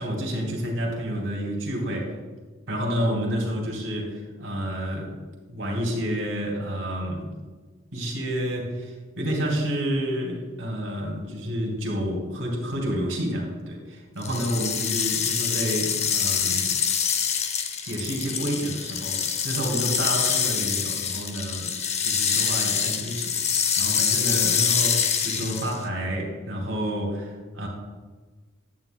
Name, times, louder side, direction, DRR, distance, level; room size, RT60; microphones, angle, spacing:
voice 1, 0.0-2.2 2.7-5.2 5.5-7.3 7.9-16.7 17.8-21.7 22.0-27.7, equal, 80° right, -1 dB, 2.5 m, -29 dB
sound 1, 14.2-25.8, left 7 dB, 35° left, 0.5 m, -25 dB
11.0 x 9.0 x 2.2 m, 1.3 s
head